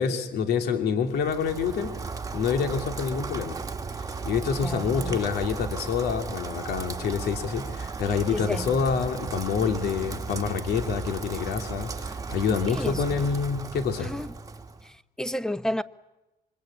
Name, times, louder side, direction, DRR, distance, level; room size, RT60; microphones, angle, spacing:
voice 1, 0.0-2.0 2.3-3.6 4.0-14.1, left 6 dB, 70° left, 2.8 m, -27 dB
Rain, 1.1-14.9, right 4 dB, 20° right, 1.4 m, -35 dB
voice 2, 4.6-5.2 8.3-8.8 12.7-13.2 14.0-14.3 14.8-15.8, left 1 dB, 5° left, 0.9 m, -32 dB
26.0 x 23.5 x 8.6 m
cardioid pair, 110°, 17 cm